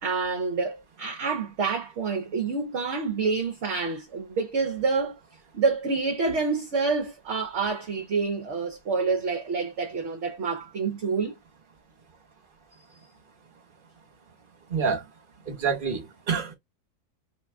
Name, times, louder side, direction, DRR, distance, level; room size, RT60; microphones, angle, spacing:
voice 1, 0.0-5.2 5.5-11.4, right 4 dB, 55° right, 1.0 m, -27 dB
voice 2, 14.7-15.0 15.5-16.5, right 6 dB, 35° right, 1.4 m, -27 dB
5.1 x 2.2 x 3.4 m
omnidirectional pair, 1.6 m